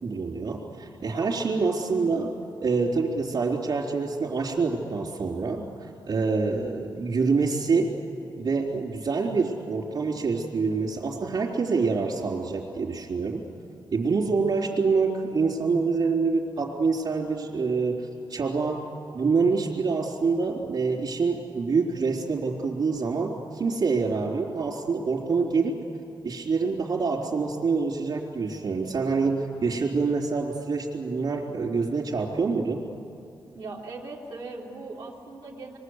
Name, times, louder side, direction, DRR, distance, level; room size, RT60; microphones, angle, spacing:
voice 1, 0.0-2.3 2.6-7.9 8.4-13.5 13.9-18.9 19.1-25.8 26.2-32.8, right 4 dB, 60° right, -4 dB, 3.9 m, -26 dB
voice 2, 33.5-35.8, right 3 dB, 90° right, -5 dB, 3.7 m, -39 dB
27.5 x 23.0 x 8.2 m, 2.7 s
wide cardioid pair, 145°, 8 cm